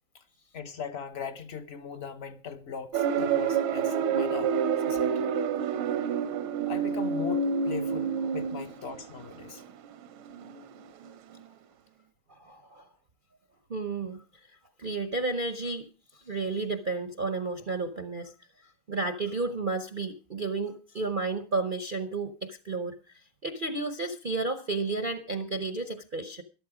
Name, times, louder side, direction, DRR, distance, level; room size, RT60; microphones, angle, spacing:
voice 1, 0.5-4.6 4.8-5.1 6.7-9.6, left 6 dB, 50° left, 0.8 m, -39 dB
sound 1, 2.9-10.8 11.1-11.4, right 6 dB, 85° right, 1.7 m, -28 dB
voice 2, 12.3-12.9 13.7-14.2 14.8-15.9 16.2-18.3 18.9-26.4, right 3 dB, 55° right, 0.5 m, -32 dB
13.0 x 12.0 x 4.9 m
omnidirectional pair, 2.2 m